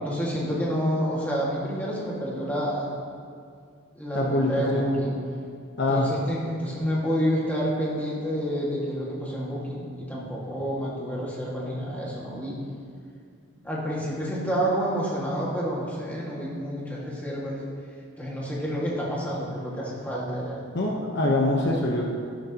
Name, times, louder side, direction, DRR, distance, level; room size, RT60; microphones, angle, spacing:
voice 1, 0.0-2.9 4.0-5.2 5.9-12.6 13.6-17.6 18.2-20.7, equal, 5° left, -5 dB, 1.9 m, -29 dB
voice 2, 4.1-4.9 5.8-6.1 20.7-22.0, left 2 dB, 50° left, -1 dB, 1.0 m, -24 dB
13.0 x 11.5 x 2.9 m, 2.3 s
head